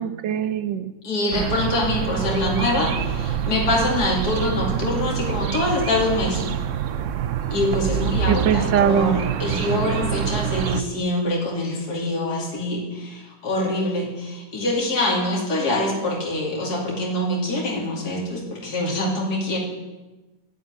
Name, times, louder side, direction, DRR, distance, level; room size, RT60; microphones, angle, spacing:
voice 1, 0.0-0.9 8.3-9.2, right 8 dB, 85° right, 12 dB, 1.5 m, -22 dB
voice 2, 1.0-6.4 7.5-19.6, left 1 dB, 60° left, -3 dB, 3.3 m, -24 dB
sound 1, 1.3-10.8, right 8 dB, 60° right, 0.9 m, -26 dB
11.5 x 11.0 x 9.2 m, 1.2 s
omnidirectional pair, 1.9 m